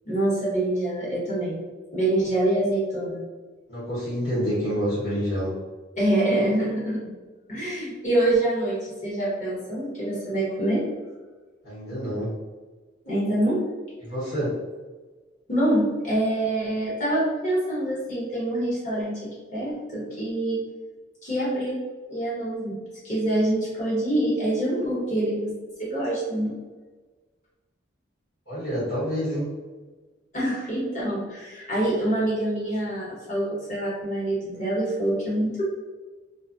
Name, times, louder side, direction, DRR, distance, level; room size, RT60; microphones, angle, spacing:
voice 1, 0.0-1.6 1.9-3.2 6.0-7.1 7.5-10.8 13.0-13.6 15.5-20.6 21.2-21.8 22.1-22.8 23.0-25.5 25.8-26.5 30.3-35.6, right 1 dB, 40° left, -7 dB, 1.1 m, -25 dB
voice 2, 3.7-5.5 11.6-12.3 14.0-14.5 28.5-29.5, equal, 60° left, -11 dB, 1.2 m, -27 dB
2.5 x 2.3 x 2.5 m, 1.3 s
head